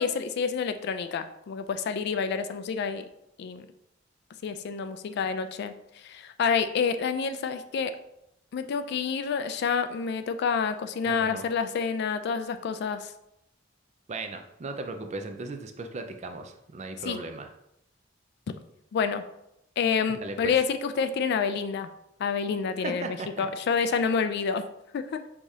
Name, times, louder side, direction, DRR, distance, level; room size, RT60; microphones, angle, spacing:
voice 1, 0.0-3.0 3.4-3.7 4.4-5.7 6.0-7.9 8.5-13.1 17.0-17.2 18.9-19.2 19.8-21.9 22.2-24.6 24.9-25.2, left 6 dB, 55° left, 10 dB, 0.3 m, -28 dB
voice 2, 11.0-11.5 14.1-17.5 20.1-20.6 22.8-23.5, right 3 dB, 35° right, 6 dB, 0.4 m, -37 dB
4.8 x 3.6 x 2.7 m, 0.83 s
head